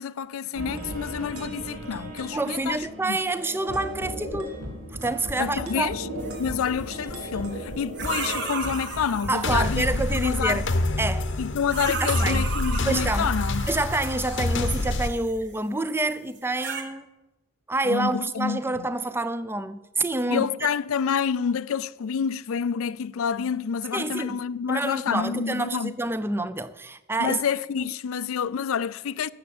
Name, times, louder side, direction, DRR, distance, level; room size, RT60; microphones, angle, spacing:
voice 1, 0.0-3.2 5.4-6.1 6.4-10.6 11.4-13.7 17.8-18.9 20.3-25.9 27.2-29.3, left 7 dB, 70° left, 0.4 m, -28 dB
sound 1, 0.5-9.5, right 1 dB, 80° right, 2.8 m, -36 dB
voice 2, 2.3-4.6 4.9-5.9 9.3-10.6 11.0-11.3 12.0-12.4 12.9-13.3 13.7-17.1 17.7-20.5 23.9-24.4 24.7-27.4 27.8-27.9, right 2 dB, 10° right, 0.5 m, -27 dB
sound 2, 6.2-6.8 7.9-10.8 11.6-15.6 16.3-16.8, right 4 dB, 50° right, 1.6 m, -35 dB
sound 3, 9.4-15.1, left 2 dB, 50° left, 0.8 m, -27 dB
13.0 x 7.5 x 8.6 m
head